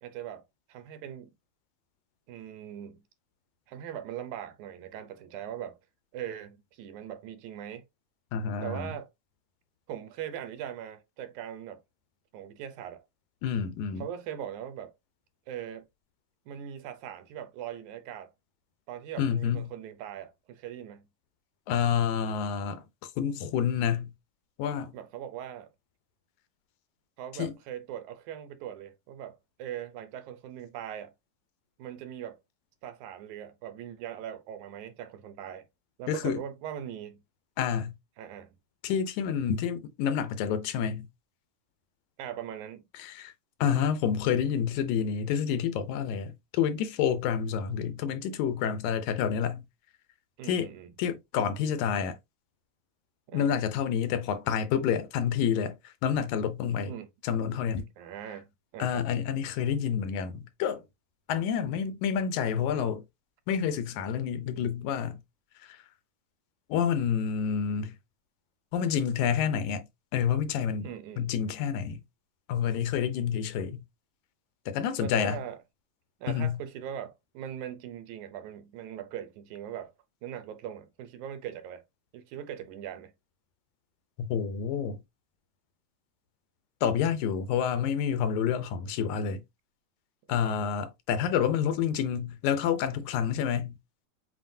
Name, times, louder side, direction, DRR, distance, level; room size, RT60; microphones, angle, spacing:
voice 1, 0.0-1.3 2.3-3.0 3.7-5.8 6.1-7.8 8.6-9.1 9.9-11.8 12.3-13.0 14.0-14.9 15.5-15.9 16.5-18.3 18.9-21.1 24.9-25.7 27.2-31.1 31.8-32.4 32.8-35.7 36.0-37.2 38.2-38.5 42.2-42.8 50.4-50.9 53.3-53.6 56.9-57.1 58.0-59.0 70.8-71.3 75.0-75.6 76.2-79.9 80.2-81.8 82.1-83.1 90.3-90.6, right 10 dB, 85° right, 2.2 m, -40 dB
voice 2, 8.3-8.9 13.4-14.1 19.2-19.7 21.7-22.8 23.2-24.1 24.6-24.9 27.4-27.6 36.1-36.4 37.6-37.9 38.8-41.1 42.9-43.3 43.6-49.6 50.5-50.7 51.0-52.2 53.3-56.9 57.2-57.9 58.8-60.8 61.3-63.0 63.5-65.2 65.6-65.8 66.7-68.0 68.7-69.9 70.1-72.0 72.5-73.8 74.7-75.4 76.3-76.6 84.2-85.0 86.8-89.4 90.3-93.8, left 8 dB, 80° left, 2.1 m, -28 dB
7.4 x 2.7 x 2.7 m
omnidirectional pair, 3.4 m